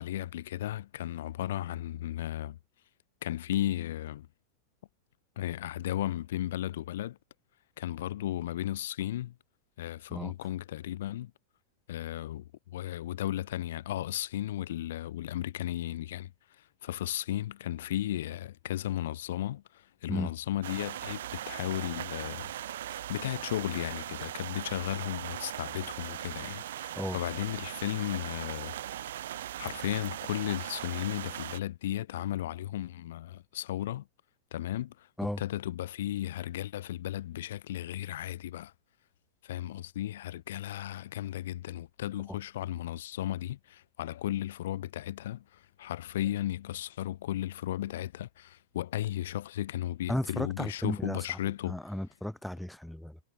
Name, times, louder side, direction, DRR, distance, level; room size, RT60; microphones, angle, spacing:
voice 1, 0.0-2.6 3.2-4.3 5.4-7.2 7.8-9.4 9.8-11.3 11.9-16.3 16.6-22.5 23.1-34.1 34.5-38.7 39.4-51.8, left 13 dB, 75° left, 5.4 m, -35 dB
sound 1, 20.6-31.6, right 12 dB, 80° right, 0.9 m, -39 dB
voice 2, 50.1-51.4 51.6-53.2, left 1 dB, ahead, 1.1 m, -34 dB
supercardioid pair, 150°, 0 cm